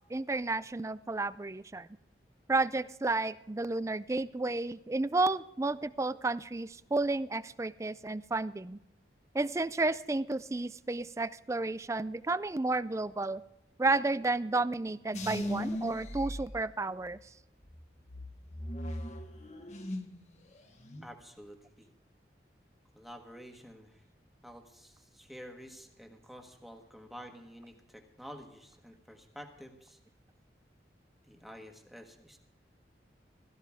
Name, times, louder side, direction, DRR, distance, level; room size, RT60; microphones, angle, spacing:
voice 1, 0.1-1.9 2.5-8.8 9.3-13.4 13.8-17.2, right 2 dB, 15° right, 17 dB, 0.4 m, -32 dB
sound 1, 15.1-17.2 17.6-20.2 20.5-21.1, equal, 40° left, 1.4 m, -39 dB
voice 2, 21.0-21.9 22.9-24.0 24.4-30.0 31.2-32.4, equal, ahead, 3 dB, 1.5 m, -50 dB
16.0 x 15.0 x 3.6 m, 0.88 s
head